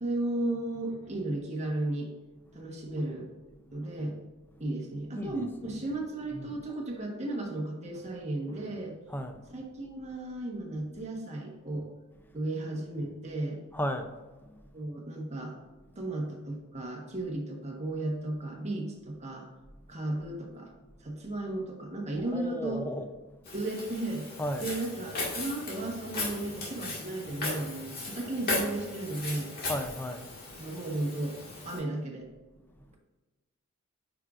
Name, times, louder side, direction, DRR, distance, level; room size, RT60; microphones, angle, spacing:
voice 1, 0.0-2.1 2.5-3.3 3.7-4.2 4.6-8.9 9.5-11.9 12.3-13.6 14.7-15.5 16.0-19.5 19.9-20.7 21.0-22.9 23.5-24.3 24.6-29.5 30.6-32.3, right 2 dB, 30° right, 0 dB, 1.2 m, -34 dB
voice 2, 5.1-5.8 6.3-6.6 9.1-9.4 13.7-14.1 14.4-14.7 22.3-23.1 24.4-24.7 29.7-30.5, equal, 10° left, 6 dB, 0.5 m, -35 dB
Walk footsteps, 23.5-31.8, left 2 dB, 45° left, 1.7 m, -37 dB
9.0 x 4.9 x 2.5 m, 1.2 s
head